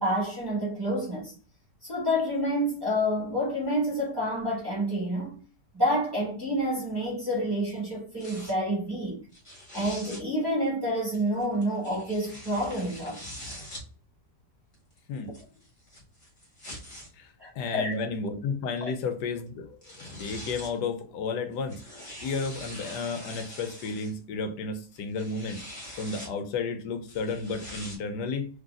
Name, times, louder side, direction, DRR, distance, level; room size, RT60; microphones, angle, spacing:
voice 1, 0.0-1.3 1.8-5.4 5.7-9.2 9.7-13.2 17.4-18.0 18.8-18.9, equal, 15° right, 1.3 m, -28 dB
sound 1, 8.2-8.5 9.3-10.2 11.1-13.8 14.7-17.1 17.9-18.0 19.5-19.6 19.8-20.8 21.5-24.1 24.9-26.3 27.1-28.0, left 1 dB, 30° left, 1.7 m, -43 dB
voice 2, 17.1-21.8 22.2-25.6 26.0-28.5, left 4 dB, 80° left, 1.2 m, -32 dB
3.9 x 3.0 x 2.4 m
omnidirectional pair, 1.8 m